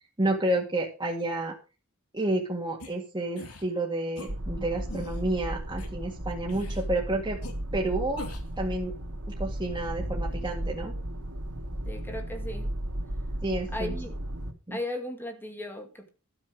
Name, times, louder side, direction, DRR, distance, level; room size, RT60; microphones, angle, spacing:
voice 1, 0.2-1.6 2.1-7.4 7.7-8.3 8.6-8.9 9.3-10.9 13.4-13.9 14.7-14.8, right 1 dB, 20° right, 2.1 m, -30 dB
sound 1, 2.8-2.9 3.4-3.6 4.2-4.3 4.9-5.2 5.8-5.9 6.5-6.9 7.4-7.5 8.2-8.5, left 2 dB, 80° left, 3.0 m, -41 dB
sound 2, 4.3-14.5, right 1 dB, 85° right, 2.6 m, -35 dB
voice 2, 11.8-12.7 13.7-14.2 14.7-16.1, left 1 dB, 10° left, 2.1 m, -36 dB
12.5 x 7.1 x 6.4 m
head